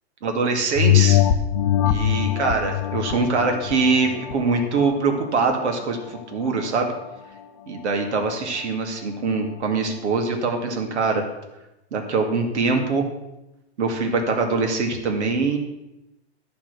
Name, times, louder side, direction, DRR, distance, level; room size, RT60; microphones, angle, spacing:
voice 1, 0.2-1.2 1.8-6.9 7.7-11.2 11.9-13.1 13.8-15.6, right 4 dB, 80° right, 3 dB, 2.3 m, -23 dB
sound 1, 0.8-5.7 6.2-6.3, left 12 dB, 30° left, 0.4 m, -22 dB
12.0 x 5.9 x 6.7 m, 0.95 s
hypercardioid pair, 160°, 33 cm